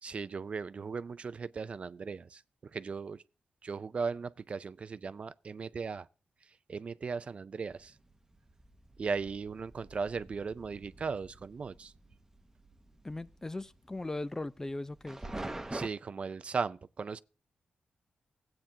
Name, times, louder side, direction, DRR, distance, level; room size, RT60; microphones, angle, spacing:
voice 1, 0.0-3.2 3.6-6.1 6.7-7.9 9.0-11.9 15.7-17.2, right 5 dB, 50° right, 0.4 m, -37 dB
sound 1, 7.7-15.9, right 2 dB, 15° right, 0.9 m, -46 dB
voice 2, 13.0-15.2, left 2 dB, 20° left, 0.4 m, -38 dB
15.0 x 8.7 x 2.7 m
cardioid pair, 75°, 3 cm